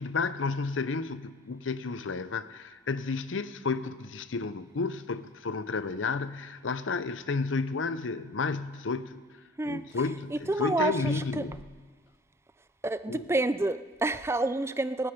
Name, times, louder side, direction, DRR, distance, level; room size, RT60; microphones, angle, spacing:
voice 1, 0.0-9.2 9.6-11.6 13.1-13.3, left 4 dB, 85° left, 13 dB, 0.7 m, -32 dB
voice 2, 10.3-11.4 12.8-15.1, right 2 dB, 15° right, 13 dB, 0.4 m, -29 dB
20.5 x 12.0 x 5.2 m, 1.5 s
head